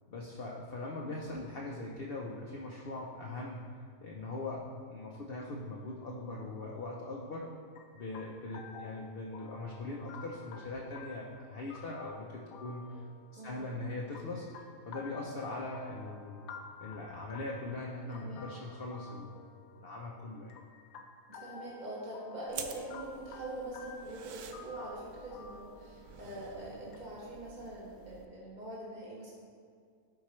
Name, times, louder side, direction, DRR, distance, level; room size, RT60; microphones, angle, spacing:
voice 1, 0.1-3.6 4.0-7.5 7.9-12.8 13.4-14.5 14.9-16.4 16.8-19.3 19.8-20.5, left 2 dB, 50° left, -3 dB, 0.8 m, -41 dB
sound 1, 7.8-27.0, left 5 dB, 70° left, 1.0 m, -52 dB
voice 2, 13.4-13.9 18.1-18.5 21.3-29.3, right 1 dB, 30° right, -6 dB, 1.7 m, -44 dB
sound 2, 22.5-28.3, right 7 dB, 70° right, 0.9 m, -49 dB
12.5 x 4.6 x 3.1 m, 2.2 s
omnidirectional pair, 1.6 m